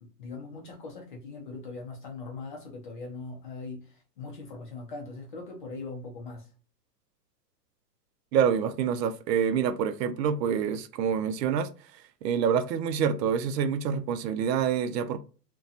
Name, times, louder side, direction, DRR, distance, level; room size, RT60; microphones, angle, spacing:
voice 1, 0.0-6.5, left 3 dB, 35° left, 0.4 m, -41 dB
voice 2, 8.3-15.2, right 7 dB, 80° right, 0.5 m, -27 dB
2.7 x 2.2 x 2.4 m
hypercardioid pair, 160°, 49 cm